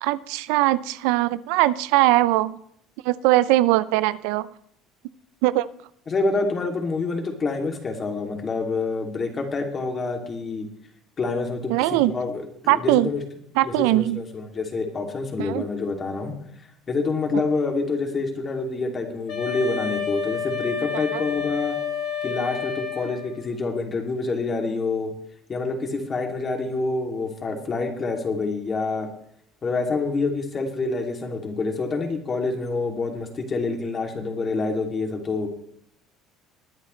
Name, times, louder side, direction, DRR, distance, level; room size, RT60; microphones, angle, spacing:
voice 1, 0.0-2.6 3.0-4.5 5.4-5.7 11.7-12.2 12.7-13.1 13.6-14.2 15.4-15.6 17.3-17.4 21.1-21.2, right 16 dB, 85° right, 16 dB, 0.5 m, -21 dB
voice 2, 6.1-10.7 11.2-13.2 13.6-16.3 16.9-21.8 22.2-25.1 25.5-29.1 29.6-35.5, left 3 dB, 30° left, 3 dB, 2.7 m, -27 dB
Wind instrument woodwind instrument, 19.3-23.5, left 7 dB, 60° left, 3.5 m, -29 dB
21.0 x 9.6 x 3.2 m, 0.69 s
cardioid pair, 120°, 0 cm